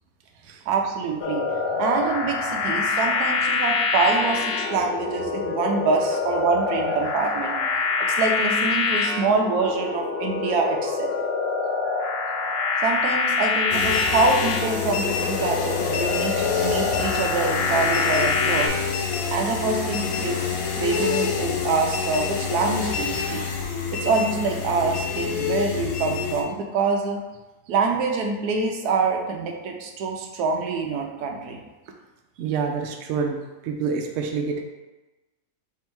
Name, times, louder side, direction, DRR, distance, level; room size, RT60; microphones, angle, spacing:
voice 1, 0.7-1.5 1.7-7.6 8.0-11.1 12.8-18.7 19.3-20.5 20.7-23.4 23.9-27.2 27.7-31.6, right 4 dB, 90° right, 2 dB, 1.1 m, -25 dB
sound 1, 1.2-18.7, left 4 dB, 90° left, 0.5 m, -25 dB
sound 2, 13.7-26.4, left 6 dB, 70° left, 1.0 m, -27 dB
voice 2, 32.4-33.4 33.6-34.6, right 5 dB, 65° right, 3 dB, 0.8 m, -28 dB
3.5 x 2.7 x 4.4 m, 1.1 s
omnidirectional pair, 1.6 m